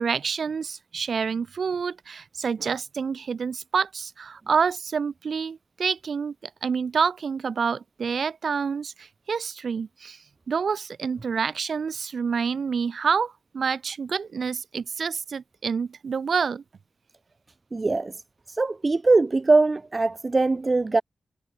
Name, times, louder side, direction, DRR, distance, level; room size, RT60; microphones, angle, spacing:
voice 1, 0.0-10.2 10.5-16.6, right 6 dB, 60° right, 6.7 m, -28 dB
voice 2, 17.7-18.1 18.5-21.0, right 3 dB, 30° right, 0.7 m, -21 dB
wide cardioid pair, 130°, 0 cm